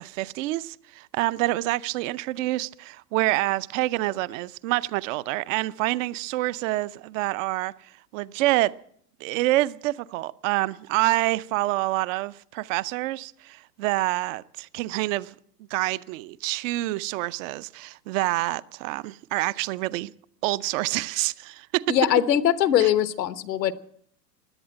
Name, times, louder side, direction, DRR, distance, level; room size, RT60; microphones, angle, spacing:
voice 1, 0.0-8.7 9.2-15.4 15.7-20.1 20.4-22.0 22.8-22.9, right 18 dB, 50° right, 0.7 m, -27 dB
voice 2, 21.9-23.7, left 11 dB, 85° left, 1.2 m, -21 dB
17.0 x 11.0 x 7.6 m
hypercardioid pair, 115°, 49 cm